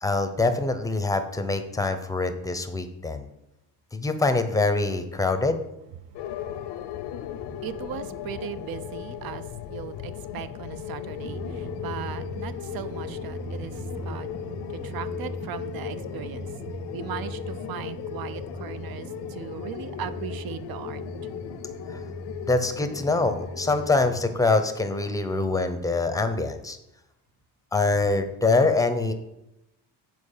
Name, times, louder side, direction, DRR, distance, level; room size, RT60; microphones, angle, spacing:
voice 1, 0.0-3.3 3.9-5.6 21.9-22.0 22.4-26.8 27.7-29.1, left 3 dB, 10° left, 8 dB, 0.7 m, -24 dB
sound 1, 6.1-23.9, left 11 dB, 80° left, 0.7 m, -37 dB
voice 2, 7.1-21.0, right 10 dB, 60° right, 13 dB, 0.6 m, -38 dB
Drum, 11.1-24.6, right 1 dB, 80° right, 2.1 m, -39 dB
7.7 x 4.6 x 6.6 m, 0.87 s
cardioid pair, 145°, 42 cm